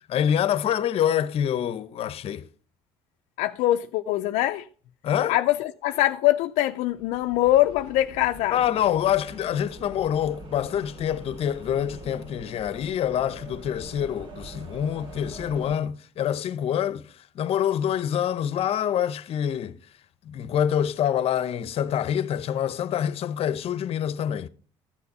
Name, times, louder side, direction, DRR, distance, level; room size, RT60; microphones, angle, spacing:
voice 1, 0.1-2.5 5.0-5.4 8.5-17.0 17.3-19.8 20.3-24.5, left 9 dB, 55° left, 0.8 m, -26 dB
voice 2, 3.4-4.7 5.3-8.6, left 15 dB, 80° left, 0.5 m, -23 dB
sound 1, 6.9-15.8, right 1 dB, 45° right, 2.5 m, -44 dB
13.5 x 7.0 x 5.3 m
supercardioid pair, 85°, 12 cm